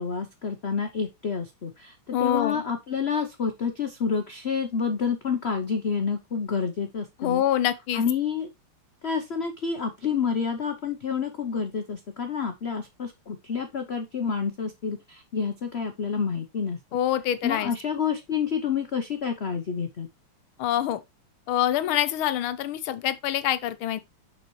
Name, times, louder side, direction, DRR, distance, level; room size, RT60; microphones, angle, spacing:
voice 1, 0.0-7.4 7.9-8.5 9.0-16.8 17.4-20.1, left 6 dB, 60° left, 0.6 m, -29 dB
voice 2, 2.1-2.6 7.2-8.0 16.9-17.7 20.6-21.0 21.5-24.0, left 11 dB, 85° left, 1.6 m, -25 dB
6.9 x 5.6 x 3.1 m
omnidirectional pair, 2.3 m